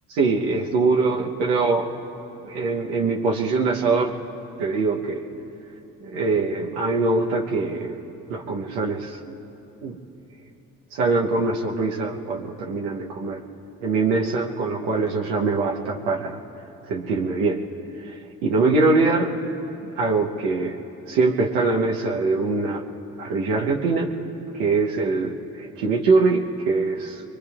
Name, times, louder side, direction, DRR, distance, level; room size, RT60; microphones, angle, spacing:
voice 1, 0.1-1.9 2.4-4.1 4.6-5.2 6.0-8.0 8.3-9.3 9.8-10.0 10.9-13.4 13.8-16.4 16.9-17.6 18.0-19.3 19.8-20.8 21.1-22.8 23.2-24.1 24.5-27.2, right 3 dB, 85° right, 0 dB, 1.0 m, -23 dB
23.5 x 23.0 x 2.4 m, 2.9 s
hypercardioid pair, 50°, 40 cm